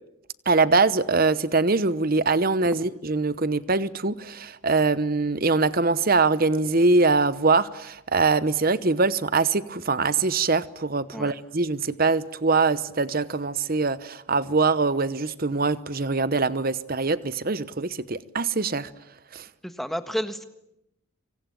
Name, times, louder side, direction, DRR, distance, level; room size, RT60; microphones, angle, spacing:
voice 1, 0.5-18.9 19.3-19.5, right 3 dB, 40° right, 1.0 m, -23 dB
voice 2, 19.6-20.4, equal, ahead, 1.5 m, -30 dB
25.5 x 24.5 x 9.2 m
head